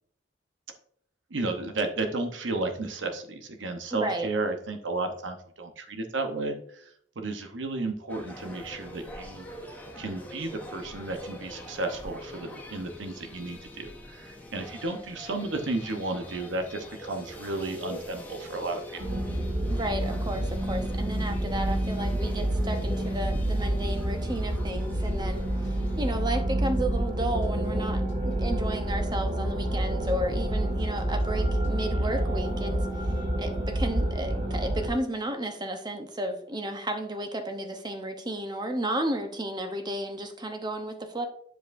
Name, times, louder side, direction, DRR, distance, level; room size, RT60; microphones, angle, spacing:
voice 1, 1.3-6.9 7.2-9.5 9.9-19.2 31.9-32.2, right 2 dB, 80° right, 5 dB, 0.9 m, -33 dB
voice 2, 3.9-4.3 19.7-25.5 26.0-32.7 33.4-41.3, right 1 dB, 25° right, 6 dB, 0.8 m, -33 dB
sound 1, 8.1-26.4, left 1 dB, 10° left, 0.9 m, -44 dB
sound 2, 19.0-34.9, right 1 dB, 50° right, 2.1 m, -28 dB
sound 3, 21.4-29.8 30.1-32.0, left 1 dB, 80° left, 1.4 m, -41 dB
10.0 x 4.9 x 2.6 m, 0.65 s
head